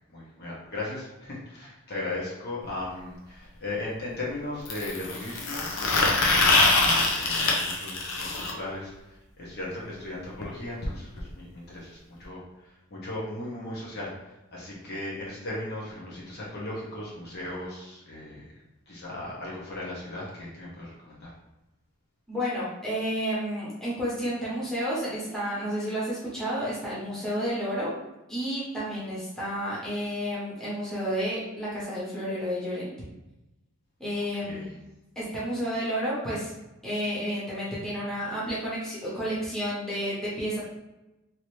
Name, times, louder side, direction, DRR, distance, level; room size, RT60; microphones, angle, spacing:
voice 1, 0.0-18.4 18.9-21.3 34.3-34.7, left 2 dB, 50° left, -5 dB, 1.0 m, -37 dB
sound 1, 2.6-2.7 4.7-8.5 10.4-10.5 10.8-10.9 11.2-11.3 12.2-12.3, left 3 dB, 70° left, 0.6 m, -24 dB
voice 2, 22.3-27.9 28.3-32.9 34.0-34.6 35.2-36.5 36.8-40.6, equal, 5° left, -9 dB, 1.0 m, -31 dB
2.9 x 2.8 x 3.1 m, 1.0 s
head